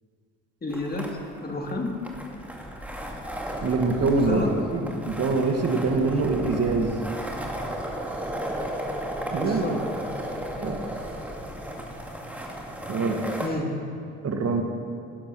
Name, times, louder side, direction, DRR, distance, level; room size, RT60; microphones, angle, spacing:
voice 1, 0.6-1.1 1.4-1.9 4.1-4.6 9.4-9.8 13.4-13.9, left 2 dB, 30° left, 1 dB, 2.4 m, -30 dB
sound 1, 0.7-13.5, equal, 5° right, 2.1 m, -34 dB
voice 2, 3.6-4.4 4.7-7.0 9.3-9.8 10.6-10.8 12.9-13.2 14.2-14.6, right 4 dB, 55° right, 4 dB, 1.7 m, -24 dB
17.5 x 10.0 x 6.3 m, 2.3 s
cardioid pair, 90°, 30 cm